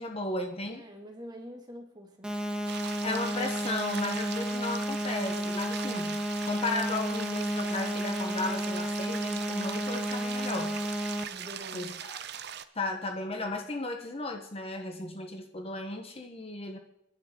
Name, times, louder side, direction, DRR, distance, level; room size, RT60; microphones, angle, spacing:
voice 1, 0.0-0.8 3.0-6.2 6.4-10.8 11.7-12.2 12.7-16.8, left 2 dB, 30° left, 4 dB, 1.0 m, -35 dB
voice 2, 0.7-2.4 11.3-11.9, equal, 20° right, 2 dB, 2.2 m, -45 dB
sound 1, 2.2-11.2, equal, 5° right, 1.2 m, -32 dB
sound 2, 2.7-12.7, right 9 dB, 60° right, 0.8 m, -41 dB
29.0 x 10.5 x 3.8 m, 0.85 s
head